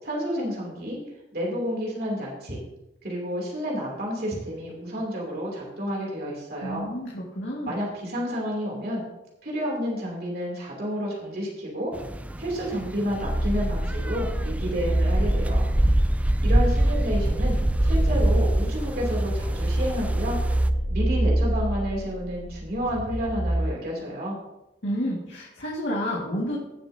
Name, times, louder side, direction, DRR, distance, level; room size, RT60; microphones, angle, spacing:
voice 1, 0.0-1.0 1.3-2.6 3.0-6.9 7.6-9.1 9.4-11.9 12.4-15.7 16.4-20.4 20.9-24.4, equal, 60° right, -3 dB, 3.0 m, -30 dB
voice 2, 6.6-7.7 24.8-26.6, equal, 90° left, -5 dB, 2.1 m, -30 dB
sound 1, 11.9-20.7, right 1 dB, 10° right, 0.3 m, -26 dB
sound 2, 13.2-23.7, right 1 dB, 75° right, 3.2 m, -26 dB
17.0 x 7.0 x 2.8 m, 0.92 s
head